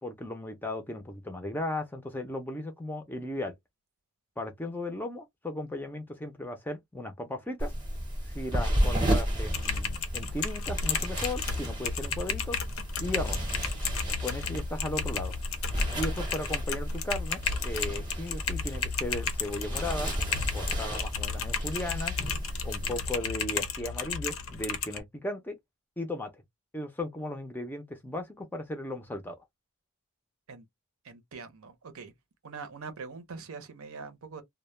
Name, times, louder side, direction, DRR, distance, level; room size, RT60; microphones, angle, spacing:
voice 1, 0.0-3.5 4.4-7.7 8.3-12.6 13.0-13.4 14.2-15.4 15.9-20.1 20.5-22.2 22.6-25.6 26.0-26.4 26.7-29.4, left 1 dB, 10° left, 0.4 m, -36 dB
sound 1, 7.6-23.2, equal, 20° right, 0.7 m, -33 dB
Typing, 9.5-25.0, left 6 dB, 70° left, 0.6 m, -34 dB
voice 2, 31.0-32.1 32.4-34.4, right 4 dB, 70° right, 0.6 m, -43 dB
2.1 x 2.1 x 3.0 m
head